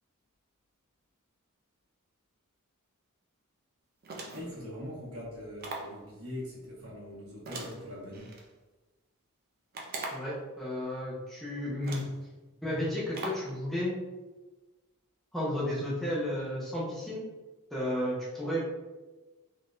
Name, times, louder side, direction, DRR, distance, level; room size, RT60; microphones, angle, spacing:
sound 1, 4.0-4.6 5.6-6.0 7.5-8.4 9.7-10.4 11.3-11.4 11.8-12.2 13.1-13.5, right 2 dB, 45° right, 0.5 m, -40 dB
voice 1, 4.3-8.2, left 1 dB, 70° right, -6 dB, 1.2 m, -42 dB
voice 2, 10.1-12.1 12.6-14.0 15.3-17.2 17.7-18.6, left 1 dB, ahead, -8 dB, 0.6 m, -33 dB
3.6 x 2.6 x 2.4 m, 1.2 s
head